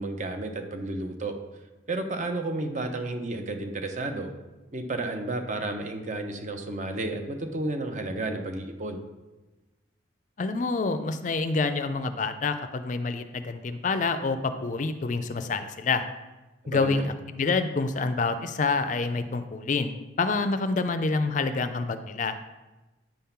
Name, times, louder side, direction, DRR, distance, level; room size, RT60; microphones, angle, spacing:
voice 1, 0.0-1.3 1.9-4.3 4.7-9.0 16.6-17.1, right 2 dB, 40° right, 5 dB, 0.8 m, -32 dB
voice 2, 10.4-16.0 16.7-22.4, left 4 dB, 40° left, 10 dB, 0.4 m, -27 dB
9.0 x 3.7 x 5.7 m, 1.1 s
head